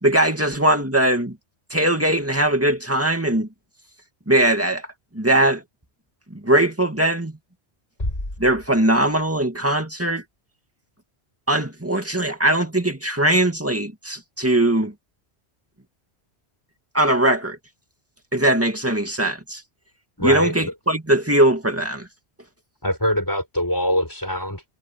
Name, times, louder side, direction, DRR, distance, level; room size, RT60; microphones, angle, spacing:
voice 1, 0.0-1.4 1.7-3.5 4.3-4.9 5.1-5.6 6.3-7.3 8.4-10.2 11.5-14.9 16.9-17.6 18.3-19.6 20.2-22.1, right 1 dB, 10° right, 2.1 m, -20 dB
sound 1, 8.0-9.9, left 1 dB, 40° left, 4.7 m, -33 dB
voice 2, 20.2-20.7 22.8-24.6, equal, 20° left, 6.4 m, -23 dB
omnidirectional pair, 1.1 m